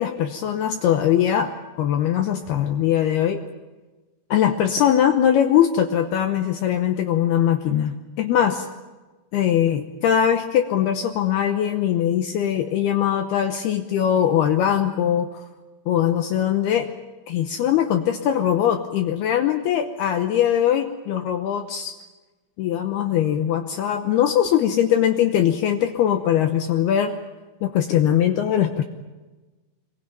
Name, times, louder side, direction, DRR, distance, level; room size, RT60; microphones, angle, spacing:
voice 1, 0.0-1.5 1.8-3.4 4.3-8.7 9.3-15.4 15.9-16.9 17.3-21.9 22.6-27.2 27.6-28.8, left 10 dB, 75° left, 7 dB, 2.3 m, -21 dB
24.5 x 21.5 x 9.0 m, 1.2 s
omnidirectional pair, 5.7 m